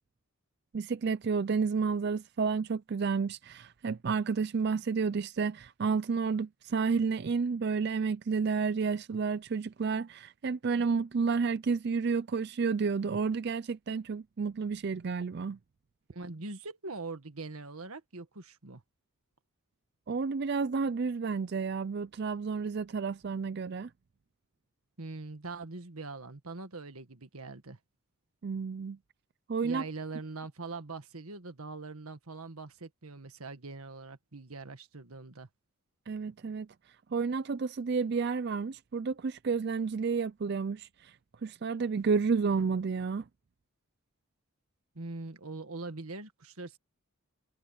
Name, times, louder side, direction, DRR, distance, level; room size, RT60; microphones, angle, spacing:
voice 1, 0.7-15.6 20.1-23.9 28.4-29.0 29.5-29.8 36.1-36.7 37.1-41.2 41.4-43.2, right 5 dB, 50° right, 0.4 m, -31 dB
voice 2, 16.1-18.8 25.0-27.8 29.6-35.5 45.0-46.8, right 3 dB, 90° right, 1.7 m, -42 dB
head